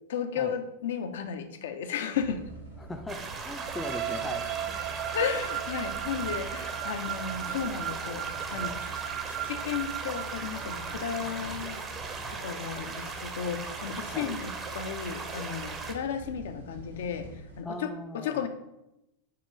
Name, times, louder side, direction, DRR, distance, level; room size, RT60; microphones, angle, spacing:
voice 1, 0.1-2.4 5.1-8.9 9.3-11.8 12.3-17.3 17.6-18.5, left 7 dB, 60° left, 8 dB, 0.6 m, -34 dB
sound 1, 2.1-17.6, right 3 dB, 85° right, 1.4 m, -45 dB
voice 2, 2.8-4.8 14.1-14.4 17.6-18.5, left 1 dB, 10° left, 6 dB, 0.5 m, -39 dB
sound 2, 3.1-15.9, right 4 dB, 25° right, 0.8 m, -39 dB
sound 3, 3.6-11.4, right 11 dB, 40° right, 0.4 m, -36 dB
6.8 x 3.0 x 4.6 m, 0.88 s
figure-of-eight pair, 90°, 0 cm